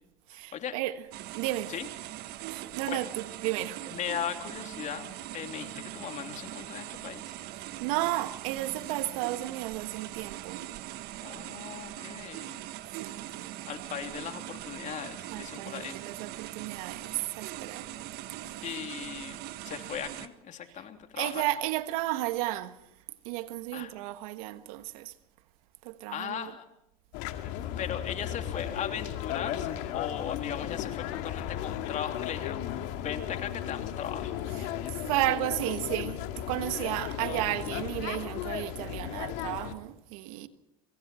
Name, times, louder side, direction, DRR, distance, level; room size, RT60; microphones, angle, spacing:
voice 1, 0.3-1.0 1.3-1.7 2.5-3.1 3.4-3.9 7.5-10.6 13.0-13.6 15.3-17.9 21.2-22.7 23.2-25.1 25.8-26.5 34.6-40.5, right 16 dB, 75° right, 1.5 m, -33 dB
sound 1, 1.1-20.3, right 14 dB, 60° right, 1.4 m, -41 dB
voice 2, 3.9-7.4 11.2-12.5 13.1-13.3 13.6-16.0 18.6-21.4 23.7-23.9 26.1-26.6 27.8-34.4, left 8 dB, 45° left, 3.1 m, -38 dB
sound 2, 27.1-39.7, left 11 dB, 70° left, 2.4 m, -35 dB
25.0 x 25.0 x 4.4 m
supercardioid pair, 100°, 18 cm